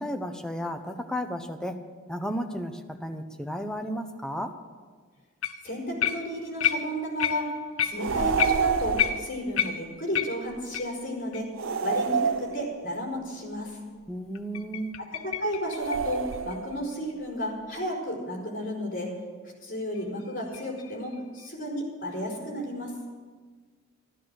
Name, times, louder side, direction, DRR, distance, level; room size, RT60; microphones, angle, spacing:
voice 1, 0.0-1.8 2.1-4.5 14.1-15.0, equal, 5° left, 5 dB, 0.8 m, -33 dB
sound 1, 5.4-5.7 6.0-11.0 11.3-11.4 11.9-12.0 12.5-12.6 14.3-17.1 19.9-21.5, left 9 dB, 80° left, 0.7 m, -31 dB
voice 2, 5.6-7.5 7.8-11.5 11.8-13.8 15.2-19.1 19.6-23.0, equal, 45° left, -2 dB, 4.4 m, -33 dB
sound 2, 8.0-9.3 11.6-13.0 15.7-16.8, right 6 dB, 65° right, 0.5 m, -28 dB
13.5 x 13.0 x 6.4 m, 1.5 s
head